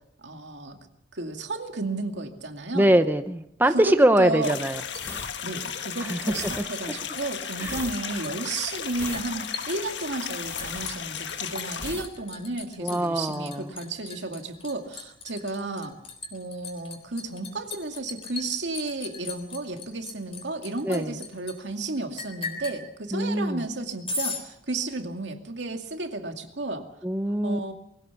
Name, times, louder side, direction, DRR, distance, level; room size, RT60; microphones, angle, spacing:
voice 1, 0.2-0.8 1.1-2.9 3.7-4.6 5.4-15.9 16.3-26.9 27.4-27.7, right 2 dB, 80° right, 5 dB, 2.3 m, -33 dB
voice 2, 2.7-4.8 6.0-6.3 7.6-7.8 12.8-13.7 20.8-21.2 23.1-23.6 27.0-27.7, right 1 dB, 10° right, 8 dB, 0.8 m, -23 dB
sound 1, 4.4-11.9, left 7 dB, 75° left, 1.5 m, -35 dB
Liquid, 4.6-6.5 6.7-7.4 7.6-21.6 22.2-22.8 24.1-24.4, left 4 dB, 30° left, 3.8 m, -38 dB
sound 2, 4.9-11.4 11.7-12.1 12.4-12.6, left 2 dB, 15° left, 1.3 m, -40 dB
22.5 x 16.5 x 7.0 m, 0.77 s
head